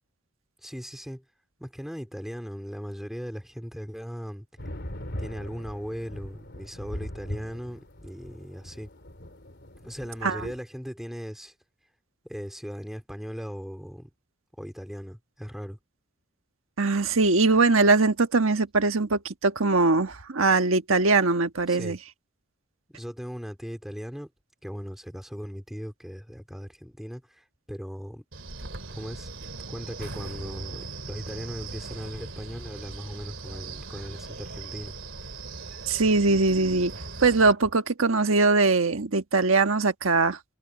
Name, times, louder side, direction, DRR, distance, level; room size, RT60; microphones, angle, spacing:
voice 1, 0.6-1.2 1.6-4.5 5.2-8.9 9.8-11.5 12.2-14.1 14.6-15.8 21.7-22.0 22.9-24.3 24.6-28.2 28.9-29.3 29.7-34.9, equal, ahead, 3.3 m, -38 dB
sound 1, 4.6-10.6, equal, 55° left, 3.7 m, -40 dB
voice 2, 16.8-22.0 35.9-36.9 37.2-40.4, right 3 dB, 80° right, 1.4 m, -22 dB
Wind, 28.3-37.5, right 3 dB, 65° right, 3.2 m, -39 dB
head